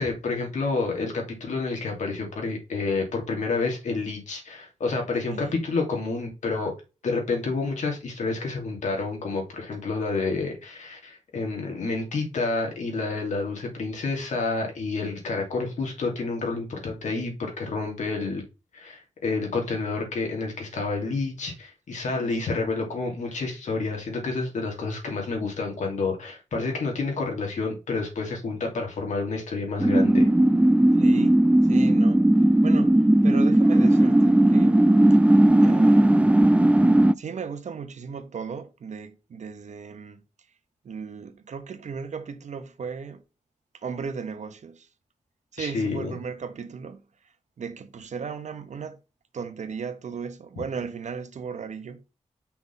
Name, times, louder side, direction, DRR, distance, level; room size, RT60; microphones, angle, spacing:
voice 1, 0.0-6.7 7.0-18.4 18.7-30.3 45.6-46.1, left 3 dB, 85° left, 2.7 m, -29 dB
voice 2, 5.3-5.6 22.1-22.6 30.9-32.3 32.6-34.9 35.6-36.4 37.1-40.2 40.8-43.2 43.7-44.9 45.5-47.1 47.6-49.0 49.3-52.0, right 6 dB, 75° right, 1.2 m, -36 dB
sound 1, 29.8-37.1, right 1 dB, 10° right, 0.5 m, -17 dB
5.8 x 4.1 x 5.6 m
cardioid pair, 65°, 12 cm